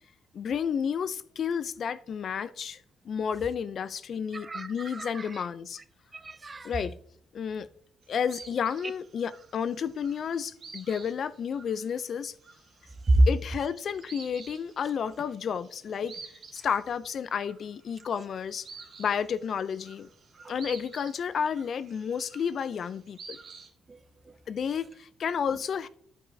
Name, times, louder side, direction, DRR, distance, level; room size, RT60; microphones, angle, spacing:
voice 1, 0.3-5.8 6.6-7.0 7.3-7.7 8.1-12.3 13.3-16.2 16.5-18.7 19.0-20.1 20.5-23.4 24.5-25.9, left 7 dB, 55° left, 0.3 m, -31 dB
voice 2, 4.3-5.5 6.1-6.9 13.1-13.3 20.4-20.5 23.9-24.4, right 1 dB, 30° right, 0.4 m, -27 dB
sound 1, 8.0-23.7, right 5 dB, 55° right, 1.1 m, -50 dB
9.5 x 5.3 x 2.6 m
cardioid pair, 90°, 0 cm